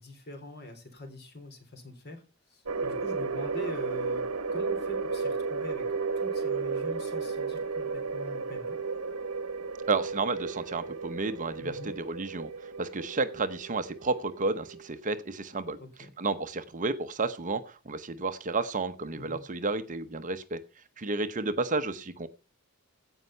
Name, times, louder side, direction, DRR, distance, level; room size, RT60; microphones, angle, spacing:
voice 1, 0.0-2.2 2.5-4.2 4.5-5.9 6.2-8.8 11.6-11.9 15.8-16.1 19.1-19.4, left 1 dB, 45° left, 6 dB, 3.5 m, -43 dB
sound 1, 2.7-14.9, right 4 dB, 70° right, 1.1 m, -33 dB
voice 2, 9.9-15.8 16.2-20.6 21.0-22.3, right 3 dB, 35° right, 11 dB, 0.8 m, -31 dB
16.0 x 5.4 x 5.6 m, 0.32 s
head